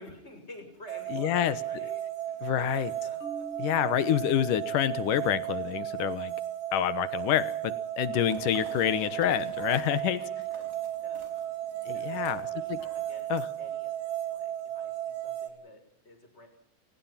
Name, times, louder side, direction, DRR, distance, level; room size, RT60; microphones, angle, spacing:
voice 1, 0.0-3.4 8.2-8.4 9.9-10.7 11.0-11.2 11.9-13.3 13.6-16.5, left 1 dB, 15° left, 5 dB, 6.5 m, -50 dB
sound 1, 0.9-15.5, right 12 dB, 80° right, 5.1 m, -35 dB
voice 2, 1.1-1.5 2.4-2.9 3.6-6.3 6.7-10.2 11.9-12.4 12.7-12.8 13.3-13.5, left 11 dB, 65° left, 15 dB, 2.6 m, -27 dB
Marimba xylophone, 3.2-5.2, right 3 dB, 40° left, 2.9 m, -47 dB
sound 2, 8.2-13.8, right 1 dB, 20° right, 5.6 m, -53 dB
30.0 x 19.5 x 5.8 m, 0.62 s
omnidirectional pair, 4.3 m